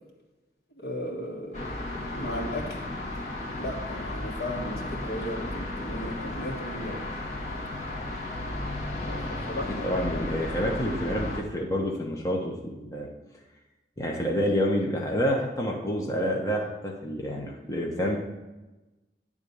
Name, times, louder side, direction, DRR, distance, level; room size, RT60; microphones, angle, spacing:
voice 1, 0.8-2.8 3.6-7.0 9.1-10.3, left 1 dB, 65° left, 0 dB, 1.6 m, -36 dB
sound 1, 1.5-11.4, left 1 dB, 40° left, 1.7 m, -34 dB
voice 2, 9.8-13.1 14.0-18.2, equal, 20° left, -2 dB, 0.8 m, -28 dB
9.2 x 3.7 x 6.8 m, 1.1 s
head